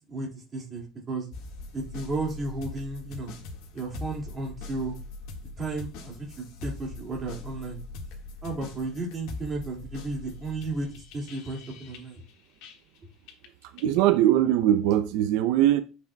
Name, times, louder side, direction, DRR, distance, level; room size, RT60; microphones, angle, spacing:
voice 1, 0.1-1.2 1.7-3.3 3.7-5.0 5.6-7.8 8.4-12.2, right 2 dB, 20° right, 2.2 m, -34 dB
sound 1, 1.3-13.0 13.3-14.0, left 3 dB, 65° left, 1.7 m, -42 dB
voice 2, 13.6-15.8, right 12 dB, 70° right, 0.5 m, -21 dB
10.0 x 6.0 x 2.3 m
cardioid pair, 175°, 0 cm